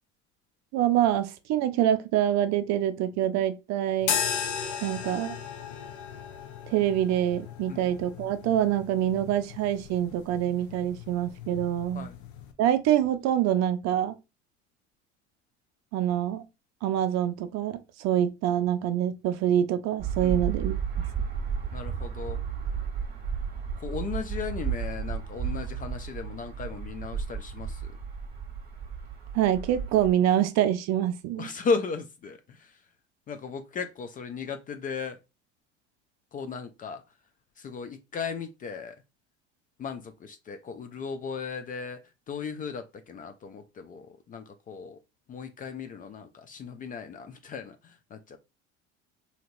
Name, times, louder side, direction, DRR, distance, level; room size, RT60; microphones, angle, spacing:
voice 1, 0.7-4.1 4.8-5.4 6.7-12.1 12.6-14.1 15.9-16.4 16.8-20.7 29.3-31.5, right 11 dB, 50° right, 0.5 m, -25 dB
sound 1, 4.0-12.5, left 8 dB, 70° left, 0.7 m, -36 dB
sound 2, 20.0-30.1, right 7 dB, 25° right, 1.2 m, -33 dB
voice 2, 21.7-22.4 23.8-27.8 31.4-32.6 33.3-35.2 36.3-37.0 37.6-39.0 39.8-42.0 42.3-45.0 45.3-47.8 48.1-48.4, left 5 dB, 25° left, 0.3 m, -35 dB
2.9 x 2.8 x 2.6 m
hypercardioid pair, 75°, 35 cm